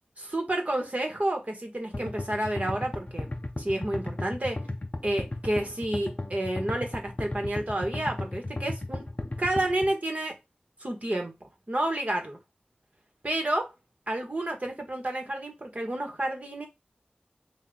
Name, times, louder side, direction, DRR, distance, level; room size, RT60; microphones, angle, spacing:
voice 1, 0.2-3.3 3.6-4.6 5.0-9.1 9.4-10.3 10.8-11.3 11.7-12.4 13.2-13.7 14.1-16.7, right 1 dB, 45° right, 1.1 m, -30 dB
sound 1, 1.9-9.9, left 2 dB, 45° left, 0.6 m, -34 dB
3.4 x 2.4 x 3.8 m
wide cardioid pair, 40°, 3 cm